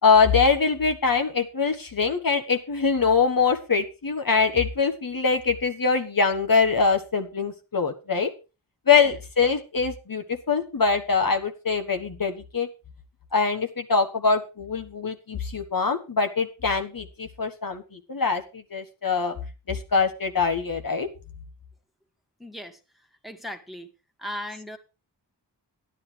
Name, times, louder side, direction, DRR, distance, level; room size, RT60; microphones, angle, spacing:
voice 1, 0.0-8.3 8.9-12.7 13.3-19.4 19.7-21.1, left 5 dB, 55° left, 5 dB, 1.4 m, -23 dB
voice 2, 22.4-22.8 23.2-23.9 24.2-24.8, left 1 dB, ahead, 4 dB, 1.8 m, -37 dB
12.0 x 10.5 x 4.6 m, 0.31 s
wide cardioid pair, 90°, 42 cm